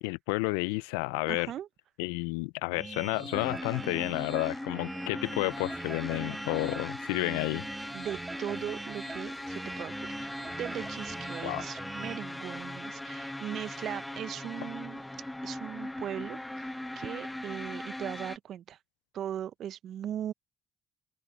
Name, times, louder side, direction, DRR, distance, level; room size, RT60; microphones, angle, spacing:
voice 1, 0.0-1.5 2.0-7.6 11.4-11.6, left 25 dB, 80° left, 0.7 m, -31 dB
voice 2, 1.3-1.7 7.9-10.3 10.6-15.0 15.4-18.8 19.1-20.3, right 10 dB, 60° right, 1.0 m, -39 dB
sound 1, 2.7-12.2, right 3 dB, 25° right, 0.5 m, -43 dB
sound 2, 3.3-18.4, left 1 dB, 10° left, 1.3 m, -39 dB
sound 3, 5.2-11.2, right 6 dB, 45° right, 5.1 m, -59 dB
open air
hypercardioid pair, 50°, 0 cm